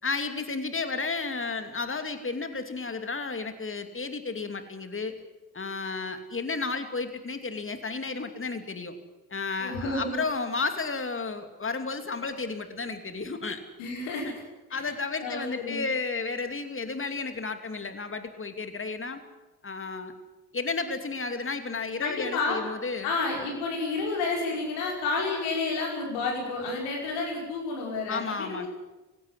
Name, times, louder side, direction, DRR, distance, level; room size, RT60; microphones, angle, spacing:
voice 1, 0.0-5.2 5.5-8.9 9.3-13.6 14.2-14.4 14.7-19.2 19.6-20.1 20.5-23.1 28.1-28.7, left 4 dB, 30° left, 8 dB, 2.7 m, -32 dB
voice 2, 9.6-10.2 13.8-14.4 14.7-14.9 15.2-15.8 22.0-22.6 23.0-28.7, left 3 dB, 80° left, 0 dB, 5.7 m, -30 dB
19.5 x 16.5 x 9.6 m, 1.1 s
hypercardioid pair, 45°, 43 cm